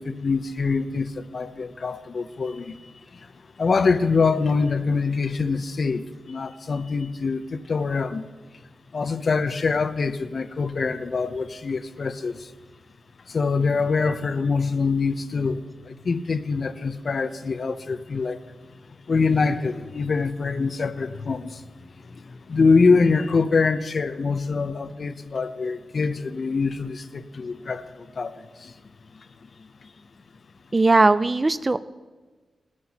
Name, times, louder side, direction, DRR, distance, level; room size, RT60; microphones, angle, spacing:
voice 1, 0.0-2.8 3.6-8.2 8.9-12.5 13.3-15.6 15.9-18.4 19.1-21.6 22.5-28.7, left 4 dB, 50° left, 11 dB, 0.6 m, -24 dB
voice 2, 30.7-31.8, right 3 dB, 25° right, 14 dB, 0.4 m, -18 dB
19.0 x 9.6 x 2.8 m, 1.4 s
wide cardioid pair, 115°, 0 cm